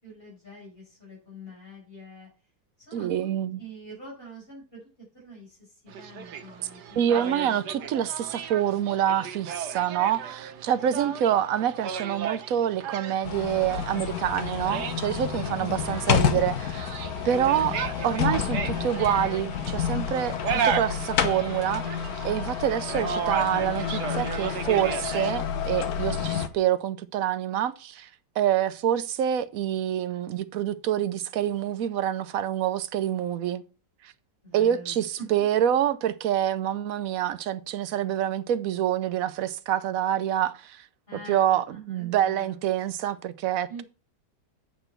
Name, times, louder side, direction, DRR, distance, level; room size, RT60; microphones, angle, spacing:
voice 1, 0.0-2.3 2.8-3.3 3.6-4.9 5.1-7.6 10.0-11.1 15.6-15.8 26.1-26.3 34.4-35.6 41.1-42.9 43.7-43.8, equal, 35° left, 6.3 m, -45 dB
voice 2, 2.9-3.6 7.0-16.9 17.2-28.1 28.4-33.6 34.5-40.9 41.3-43.8, right 10 dB, 65° right, 1.0 m, -26 dB
sound 1, 5.9-25.3, right 7 dB, 80° right, 1.4 m, -35 dB
sound 2, 13.2-26.5, left 8 dB, 65° left, 1.4 m, -29 dB
9.0 x 8.0 x 4.4 m
omnidirectional pair, 1.7 m